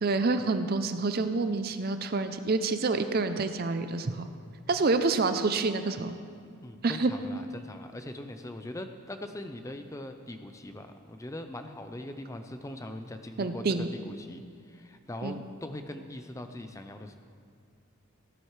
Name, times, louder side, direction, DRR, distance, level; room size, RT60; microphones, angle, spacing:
voice 1, 0.0-4.3 4.7-6.2 6.8-7.1 13.4-13.9 15.2-15.4, right 3 dB, 45° right, 9 dB, 0.5 m, -27 dB
voice 2, 6.6-17.1, left 1 dB, 15° left, 7 dB, 0.5 m, -41 dB
17.5 x 9.7 x 3.2 m, 2.3 s
head